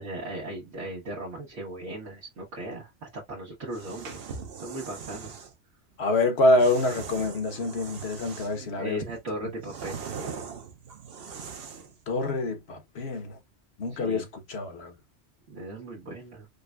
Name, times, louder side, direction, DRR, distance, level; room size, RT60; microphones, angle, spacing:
voice 1, 0.0-4.3 4.6-5.3 8.6-10.0 13.9-14.3 15.5-16.5, right 1 dB, 80° right, 1.4 m, -37 dB
sound 1, 3.7-5.5 6.6-8.7 9.1-12.0, right 6 dB, 60° right, 0.9 m, -40 dB
voice 2, 6.0-9.0 12.1-13.3 13.8-14.9, left 2 dB, 65° left, 1.1 m, -26 dB
5.1 x 2.1 x 2.2 m
omnidirectional pair, 1.2 m